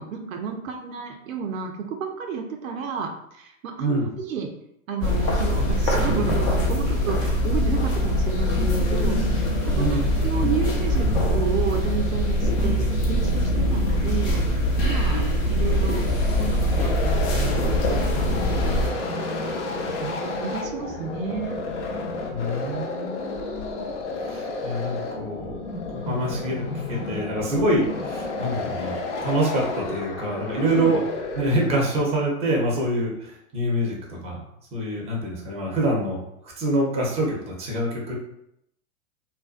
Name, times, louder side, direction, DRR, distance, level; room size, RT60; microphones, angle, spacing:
voice 1, 0.0-4.5 4.9-14.4 14.8-16.1 16.4-17.9 18.1-21.6 30.6-31.0, right 6 dB, 75° right, 3 dB, 0.6 m, -32 dB
sound 1, 5.0-18.9, equal, 30° left, 0.5 m, -22 dB
voice 2, 9.7-10.1 10.4-10.5 22.3-23.9 24.2-25.6 25.8-31.0 31.3-34.4 34.7-36.2 36.4-38.1, right 1 dB, 15° right, -2 dB, 0.6 m, -26 dB
sound 2, 16.0-32.0, left 3 dB, 60° left, 0.7 m, -31 dB
2.5 x 2.1 x 2.4 m, 0.77 s
hypercardioid pair, 110°, 41 cm